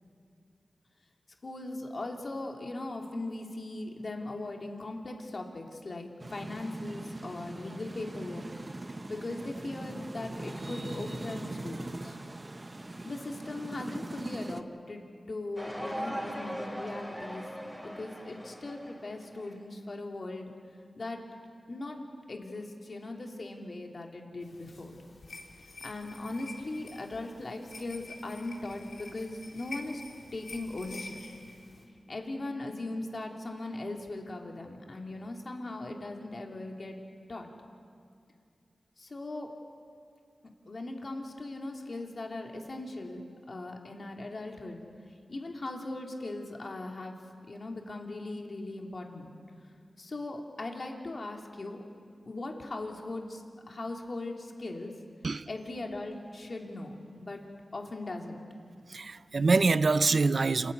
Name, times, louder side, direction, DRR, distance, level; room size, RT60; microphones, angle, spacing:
voice 1, 1.4-8.4 9.1-12.2 13.0-17.5 17.8-20.5 21.0-21.2 21.7-22.0 22.3-24.9 25.8-30.0 30.3-31.2 32.1-37.0 37.3-37.5 39.0-39.5 40.7-44.8 45.3-47.2 47.5-49.3 50.0-51.8 52.3-54.9 55.5-57.4 57.7-58.4, left 2 dB, 55° left, 3.0 m, -39 dB
sound 1, 6.2-14.6, right 2 dB, 35° right, 1.0 m, -41 dB
sound 2, 15.6-19.5, equal, ahead, 6.0 m, -40 dB
sound 3, 24.4-31.8, left 3 dB, 75° left, 3.2 m, -48 dB
voice 2, 58.9-60.7, right 3 dB, 60° right, 0.6 m, -25 dB
28.5 x 14.0 x 9.4 m
cardioid pair, 60°, 0 cm